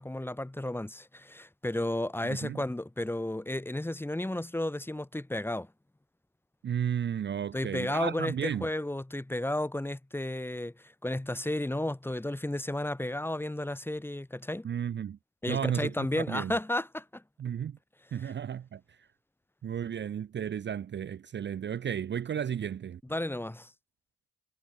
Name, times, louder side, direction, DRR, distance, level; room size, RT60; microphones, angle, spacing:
voice 1, 0.0-5.7 7.5-14.7 15.4-17.2 18.2-18.3 23.1-23.7, left 1 dB, 5° left, 1.3 m, -33 dB
voice 2, 2.2-2.6 6.6-8.7 14.6-15.2 15.5-16.5 17.4-17.8 18.1-19.1 19.6-23.0, right 8 dB, 40° right, 0.6 m, -33 dB
cardioid pair, 90°, 30 cm